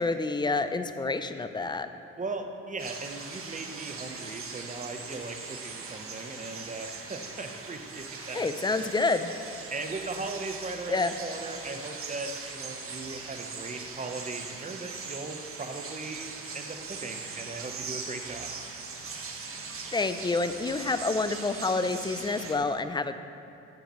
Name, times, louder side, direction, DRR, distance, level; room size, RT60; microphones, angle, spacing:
voice 1, 0.0-1.9 8.3-9.3 10.9-11.1 19.9-23.2, left 3 dB, 15° left, 10 dB, 0.5 m, -28 dB
voice 2, 2.2-8.9 9.7-16.3 16.5-18.5, right 3 dB, 25° right, 5 dB, 1.0 m, -38 dB
sound 1, 2.8-22.6, right 4 dB, 45° right, 1.3 m, -40 dB
11.0 x 9.5 x 3.1 m, 2.9 s
cardioid pair, 90°, 30 cm